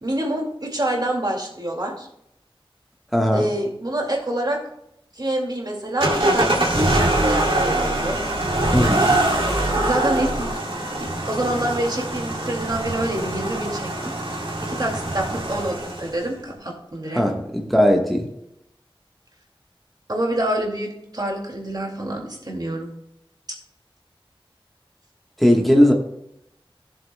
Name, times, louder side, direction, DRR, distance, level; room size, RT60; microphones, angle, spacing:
voice 1, 0.0-2.1 3.3-4.6 5.1-6.7 7.2-8.2 9.7-10.5 11.0-14.1 14.6-17.2 20.1-22.9, right 1 dB, 45° right, 1 dB, 2.1 m, -27 dB
voice 2, 3.1-3.4 8.7-9.1 17.1-18.3 25.4-25.9, equal, ahead, 1 dB, 1.2 m, -18 dB
sound 1, 6.0-16.2, right 1 dB, 65° right, 2.3 m, -23 dB
16.0 x 7.4 x 2.2 m, 0.80 s
wide cardioid pair, 60°, 9 cm